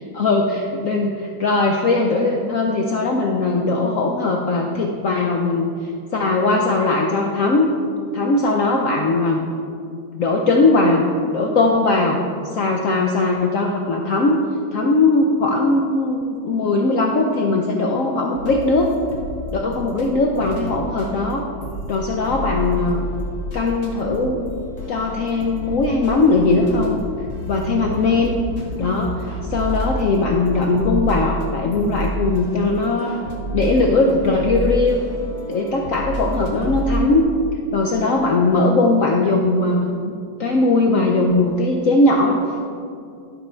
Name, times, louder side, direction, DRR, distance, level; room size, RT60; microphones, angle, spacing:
voice 1, 0.1-5.7 6.1-7.7 8.1-9.4 10.1-11.0 11.3-12.2 12.5-14.4 14.7-18.9 19.5-21.4 21.9-23.0 23.5-24.4 24.9-27.0 27.4-28.3 28.8-29.1 29.5-33.2 33.5-35.0 35.5-37.2 37.7-40.1 40.4-42.4, left 3 dB, 85° left, 1 dB, 0.7 m, -19 dB
sound 1, 18.3-20.0 20.3-37.1, equal, 40° left, 1.4 m, -29 dB
12.0 x 5.4 x 4.4 m, 2.4 s
omnidirectional pair, 2.1 m